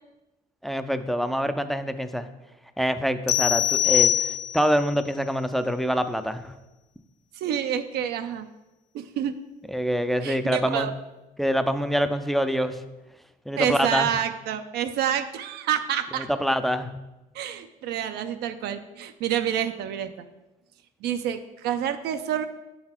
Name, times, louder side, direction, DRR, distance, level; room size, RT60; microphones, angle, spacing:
voice 1, 0.6-2.3 2.8-4.3 4.5-6.5 9.7-10.9 11.4-12.8 13.5-14.1 16.2-16.9, equal, ahead, 9 dB, 0.4 m, -25 dB
sound 1, 3.3-4.8, left 11 dB, 80° left, 0.5 m, -22 dB
voice 2, 7.4-8.5 8.9-9.3 10.2-10.9 13.6-16.3 17.3-20.1 21.0-22.5, right 9 dB, 75° right, 8 dB, 0.5 m, -28 dB
7.6 x 4.0 x 4.3 m, 1.0 s
cardioid pair, 110°, 17 cm